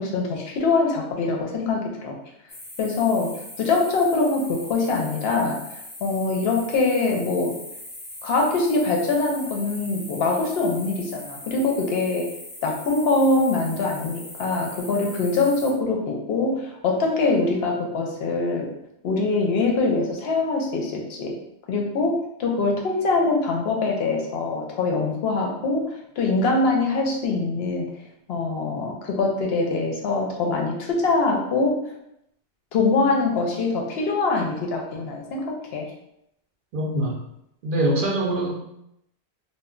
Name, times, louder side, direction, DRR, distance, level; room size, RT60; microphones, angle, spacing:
voice 1, 0.0-2.2 2.8-3.3 3.6-5.6 6.0-7.6 8.2-12.3 12.6-18.7 19.0-21.4 21.7-27.9 28.3-31.8 32.7-35.9, left 3 dB, 70° left, 0 dB, 0.8 m, -23 dB
sound 1, 2.5-15.7, left 1 dB, 30° left, 0.4 m, -40 dB
voice 2, 36.7-37.2 37.6-38.5, right 1 dB, 60° right, -2 dB, 0.6 m, -23 dB
2.1 x 2.1 x 3.6 m, 0.80 s
omnidirectional pair, 1.1 m